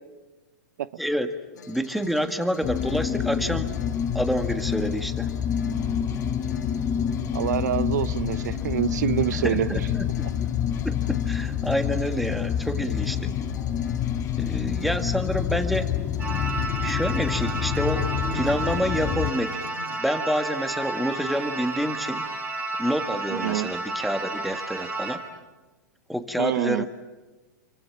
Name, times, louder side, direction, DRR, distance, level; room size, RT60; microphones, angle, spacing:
voice 1, 1.0-1.3 1.7-3.8 4.1-5.3 9.4-10.1 10.4-10.5 10.8-13.3 14.4-15.9 16.8-22.2 22.8-25.2 26.1-26.9, equal, ahead, 7 dB, 1.8 m, -28 dB
sound 1, 1.5-20.0, left 6 dB, 85° left, 3.5 m, -46 dB
sound 2, 2.6-19.3, left 8 dB, 30° left, 1.6 m, -27 dB
voice 2, 7.3-9.8 23.3-23.7 26.4-26.8, right 11 dB, 70° right, 15 dB, 0.8 m, -26 dB
sound 3, 16.2-25.2, right 3 dB, 15° right, 5.8 m, -32 dB
29.5 x 24.0 x 7.3 m, 1.2 s
hypercardioid pair, 125°, 9 cm